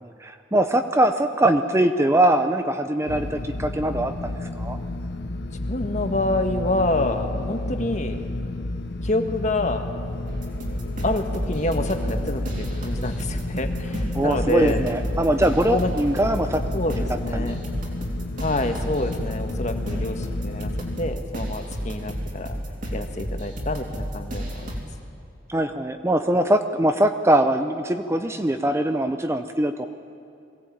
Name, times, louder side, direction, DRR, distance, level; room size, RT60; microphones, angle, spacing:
voice 1, 0.0-4.8 14.1-16.6 17.0-17.1 17.3-17.6 25.5-29.9, right 1 dB, 15° right, 8 dB, 0.6 m, -22 dB
sound 1, 3.1-21.1, left 2 dB, 55° left, 1.0 m, -31 dB
voice 2, 5.7-8.2 9.0-9.8 11.0-14.8 15.7-15.9 16.7-17.6 18.4-20.7 21.0-22.6 22.9-24.7, left 2 dB, 40° left, 6 dB, 1.5 m, -27 dB
sound 2, 10.3-24.8, equal, 45° right, 3.4 m, -32 dB
22.0 x 17.0 x 8.7 m, 2.6 s
head